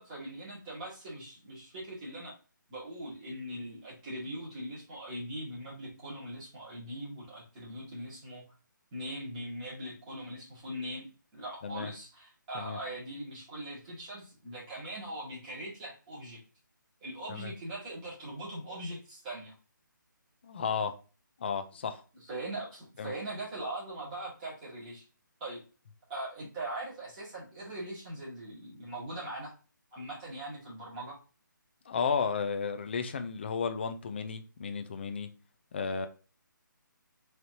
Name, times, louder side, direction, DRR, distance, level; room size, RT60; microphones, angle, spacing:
voice 1, 0.0-2.3 2.7-8.4 8.9-11.1 11.3-16.4 17.0-19.5 22.1-25.0 25.4-25.6 26.1-29.5 29.9-31.2, right 1 dB, 20° right, -7 dB, 1.9 m, -41 dB
voice 2, 20.4-20.9 21.4-22.0 23.0-23.1 31.9-35.3 35.7-36.1, left 6 dB, 30° left, 8 dB, 0.4 m, -33 dB
4.3 x 3.2 x 2.7 m, 0.34 s
hypercardioid pair, 165°, 11 cm